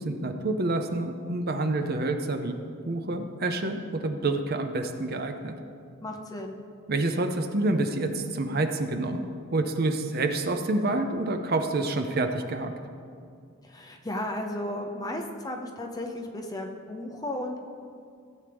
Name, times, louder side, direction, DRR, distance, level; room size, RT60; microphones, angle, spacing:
voice 1, 0.0-2.6 2.9-5.5 6.9-12.7, right 2 dB, 45° right, 6 dB, 0.6 m, -28 dB
voice 2, 6.0-6.6 13.6-17.6, left 1 dB, 20° left, 2 dB, 0.7 m, -34 dB
15.5 x 8.1 x 3.5 m, 2.3 s
head